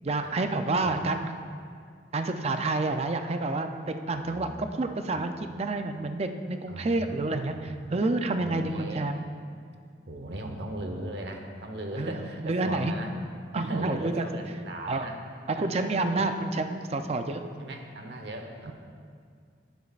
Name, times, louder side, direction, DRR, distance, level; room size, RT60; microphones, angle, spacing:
voice 1, 0.0-1.3 2.1-9.2 12.0-12.1 12.4-12.9 13.5-14.3 14.9-15.1 15.5-17.4, right 2 dB, 35° right, 7 dB, 0.5 m, -29 dB
voice 2, 0.6-1.0 4.1-4.7 5.1-5.2 6.7-7.8 8.4-9.0 10.1-13.1 13.6-15.2 15.5-16.3 17.6-18.7, right 1 dB, 75° right, 4 dB, 1.0 m, -39 dB
11.5 x 10.5 x 2.4 m, 2.2 s
head